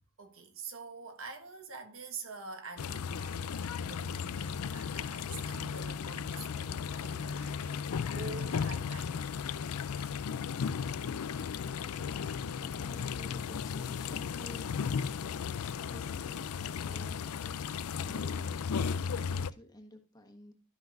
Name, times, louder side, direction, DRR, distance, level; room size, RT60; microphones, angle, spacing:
voice 1, 0.2-7.9 8.1-9.3 10.0-10.2 11.0-11.5, right 4 dB, 65° right, 1.4 m, -47 dB
sound 1, 2.8-19.5, left 6 dB, 85° left, 0.4 m, -35 dB
voice 2, 11.8-15.3 15.9-16.3 16.8-17.2 18.1-18.6 19.3-20.5, left 1 dB, 20° left, 1.3 m, -52 dB
13.0 x 5.8 x 2.5 m
head